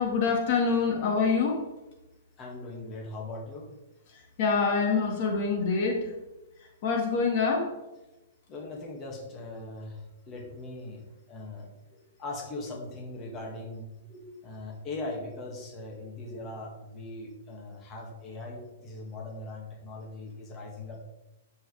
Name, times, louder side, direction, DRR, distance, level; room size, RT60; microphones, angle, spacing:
voice 1, 0.0-1.6 4.1-6.1 6.8-7.7, left 5 dB, 45° left, 1 dB, 1.8 m, -26 dB
voice 2, 2.4-3.7 8.5-21.0, left 2 dB, 25° left, 0 dB, 2.0 m, -40 dB
10.5 x 7.7 x 3.4 m, 1.0 s
hypercardioid pair, 150°, 0 cm